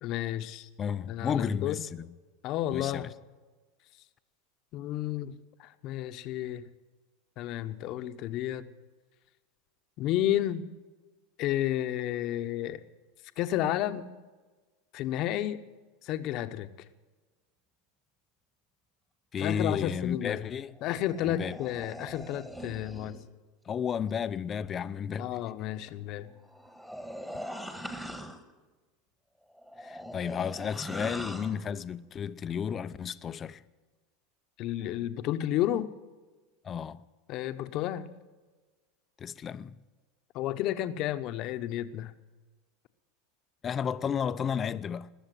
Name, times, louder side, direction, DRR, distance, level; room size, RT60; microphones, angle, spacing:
voice 1, 0.0-0.7 1.1-1.8 2.4-3.1 4.7-6.6 7.4-8.7 10.0-10.6 11.4-12.8 13.4-14.1 14.9-15.6 16.0-16.7 19.4-20.4 20.8-23.2 25.2-26.3 34.6-35.9 37.3-38.1 40.3-42.1, left 12 dB, 55° left, 1.0 m, -31 dB
voice 2, 0.8-2.2 2.7-3.1 19.3-20.7 21.2-21.6 23.7-25.3 29.8-33.6 36.6-37.0 39.2-39.8 43.6-45.1, left 7 dB, 30° left, 0.6 m, -32 dB
sound 1, 20.7-23.3 26.4-28.5 29.5-31.6, equal, 5° right, 1.6 m, -42 dB
21.0 x 7.1 x 9.2 m
hypercardioid pair, 105°, 0 cm